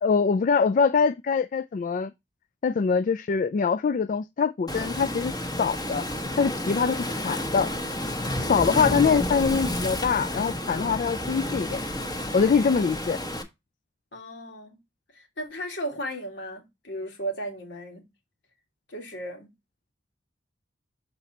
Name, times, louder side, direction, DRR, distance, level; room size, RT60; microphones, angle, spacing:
voice 1, 0.0-2.1 2.6-6.0 6.4-7.7 8.4-11.8 12.3-13.2, left 5 dB, 45° left, 0.3 m, -24 dB
Waves surf, 4.7-13.4, left 1 dB, 25° left, 1.2 m, -30 dB
voice 2, 14.1-14.8 15.1-18.1 18.9-19.5, right 1 dB, 70° left, 2.2 m, -36 dB
6.7 x 4.1 x 4.1 m
head